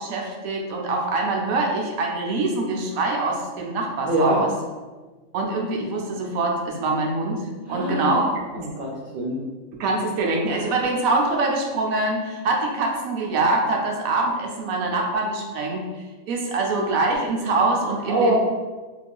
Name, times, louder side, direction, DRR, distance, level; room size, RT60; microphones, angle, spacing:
voice 1, 0.0-4.5 5.3-8.2 8.5-8.7 9.8-15.8 16.3-18.4, right 2 dB, 85° right, 0 dB, 1.0 m, -24 dB
voice 2, 4.1-4.4 7.7-8.3 8.5-9.4 18.1-18.3, right 1 dB, 70° right, -3 dB, 0.5 m, -24 dB
3.5 x 2.4 x 2.2 m, 1.3 s
omnidirectional pair, 1.4 m